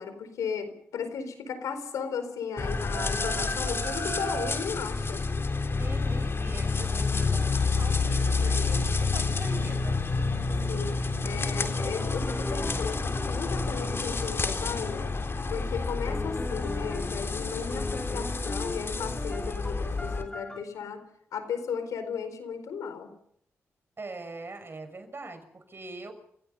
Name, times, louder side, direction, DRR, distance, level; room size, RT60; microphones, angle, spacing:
voice 1, 0.0-5.2 8.4-8.8 10.7-11.0 11.2-15.1 15.5-21.0 21.3-23.1, left 6 dB, 90° left, 9 dB, 4.5 m, -35 dB
sound 1, 2.5-4.7, right 6 dB, 75° right, 1.6 m, -39 dB
sound 2, 2.6-20.2, left 4 dB, 45° left, 3.6 m, -29 dB
voice 2, 5.8-10.0 24.0-26.1, right 3 dB, 45° right, 9 dB, 6.3 m, -42 dB
sound 3, 11.8-14.8 16.1-17.3 17.7-20.6, left 1 dB, 15° left, 5.0 m, -39 dB
29.5 x 17.0 x 5.6 m, 0.68 s
cardioid pair, 50°, 6 cm